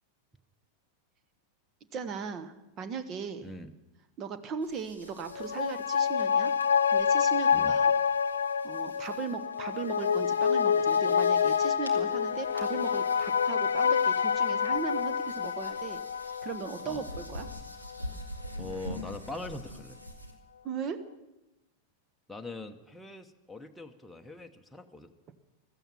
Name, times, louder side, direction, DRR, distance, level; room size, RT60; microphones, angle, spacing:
voice 1, 1.9-3.5 4.2-6.5 6.9-7.9 8.6-16.0 16.4-17.5 20.6-21.0, right 6 dB, 30° right, 11 dB, 1.2 m, -38 dB
voice 2, 3.4-3.7 7.5-7.8 16.8-17.1 18.6-20.0 22.3-25.1, left 2 dB, 5° left, 3 dB, 1.1 m, -42 dB
sound 1, 4.6-20.3, equal, 85° right, 2.2 m, -47 dB
sound 2, 5.2-18.1 18.4-18.5, left 7 dB, 70° left, 0.4 m, -27 dB
16.0 x 14.0 x 5.9 m, 0.99 s
figure-of-eight pair, 90°, 0 cm